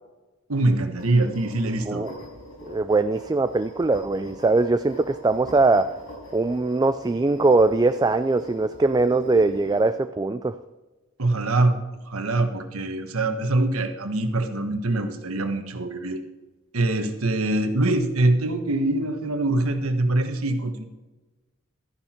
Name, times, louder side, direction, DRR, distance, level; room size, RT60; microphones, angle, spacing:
voice 1, 0.5-2.1 11.2-11.7 12.1-16.2 16.7-20.8, right 2 dB, 85° right, 6 dB, 1.3 m, -23 dB
sound 1, 1.0-9.9, equal, 70° left, 4.8 m, -43 dB
voice 2, 2.7-6.0 6.3-10.6, right 3 dB, 20° right, 10 dB, 0.3 m, -21 dB
13.5 x 10.0 x 4.4 m, 1.1 s
head